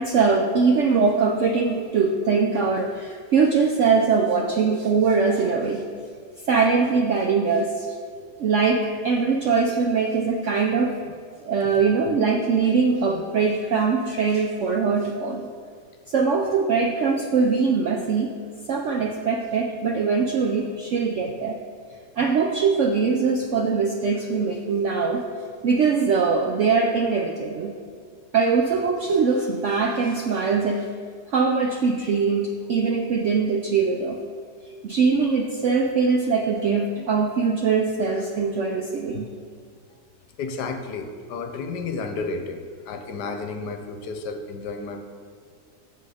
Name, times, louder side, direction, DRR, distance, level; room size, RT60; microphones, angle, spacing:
voice 1, 0.0-5.8 6.5-8.0 8.4-11.0 11.4-15.5 16.1-18.4 18.7-21.6 22.2-25.3 25.6-27.7 28.3-30.9 31.3-34.2 34.8-39.3, right 5 dB, 75° right, 3 dB, 0.7 m, -22 dB
voice 2, 40.4-45.0, left 4 dB, 75° left, 6 dB, 1.3 m, -32 dB
8.3 x 6.7 x 4.9 m, 2.1 s
omnidirectional pair, 1.9 m